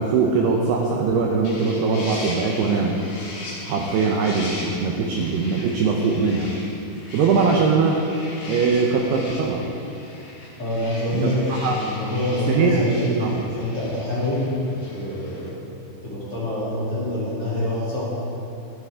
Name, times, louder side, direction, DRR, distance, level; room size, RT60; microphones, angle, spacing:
voice 1, 0.0-3.0 3.6-6.5 7.1-8.0 8.5-9.6 11.1-11.8 12.5-12.8 13.2-13.3, right 4 dB, 80° right, 0 dB, 2.4 m, -21 dB
sound 1, 1.4-15.5, left 1 dB, 50° left, 2.3 m, -39 dB
voice 2, 10.6-11.4 11.7-14.6 14.9-15.5 16.0-18.0, left 1 dB, 35° left, -10 dB, 3.6 m, -25 dB
23.5 x 7.9 x 3.7 m, 2.8 s
omnidirectional pair, 5.7 m